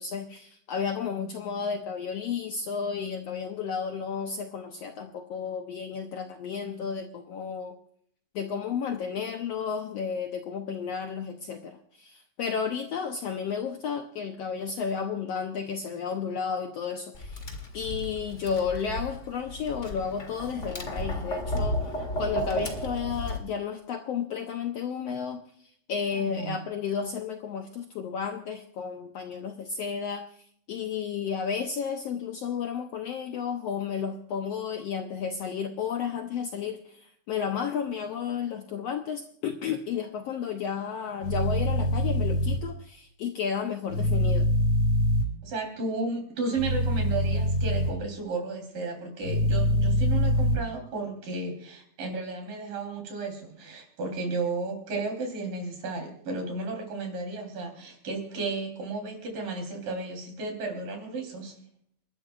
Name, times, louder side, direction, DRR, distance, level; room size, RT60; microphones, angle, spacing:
voice 1, 0.0-7.7 8.3-17.5 17.7-21.8 22.2-25.4 25.9-30.2 30.7-44.5, left 6 dB, 75° left, 5 dB, 1.5 m, -32 dB
Tap, 17.1-23.4, equal, 30° left, 1.6 m, -33 dB
voice 2, 26.1-26.6 45.4-61.5, right 3 dB, 75° right, 3 dB, 5.2 m, -33 dB
sound 1, 41.2-42.6 43.9-45.2 46.6-47.9 49.2-50.5, left 1 dB, 30° right, 5.5 m, -24 dB
29.0 x 12.0 x 2.4 m, 0.64 s
omnidirectional pair, 3.8 m